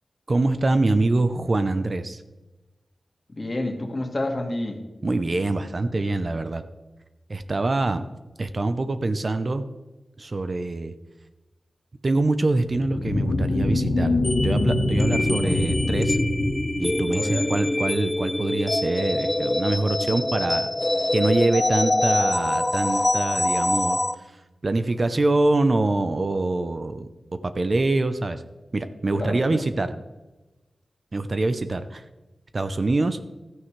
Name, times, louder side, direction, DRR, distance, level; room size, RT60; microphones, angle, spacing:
voice 1, 0.3-2.2 5.0-6.6 7.3-8.1 8.4-9.7 10.2-10.9 12.0-16.2 16.8-20.7 21.1-24.0 24.6-27.1 27.5-28.4 28.7-29.9 31.1-32.0 32.5-33.2, right 2 dB, 45° right, 10 dB, 0.6 m, -24 dB
voice 2, 3.3-4.8 15.4-15.6 17.2-17.5 29.1-29.6, left 1 dB, 35° left, 2 dB, 1.8 m, -29 dB
sound 1, 12.6-17.5, left 2 dB, 90° left, 1.2 m, -25 dB
sound 2, 14.2-24.2, left 1 dB, 20° left, 0.4 m, -25 dB
13.5 x 9.4 x 3.2 m, 1.1 s
wide cardioid pair, 100°, 0 cm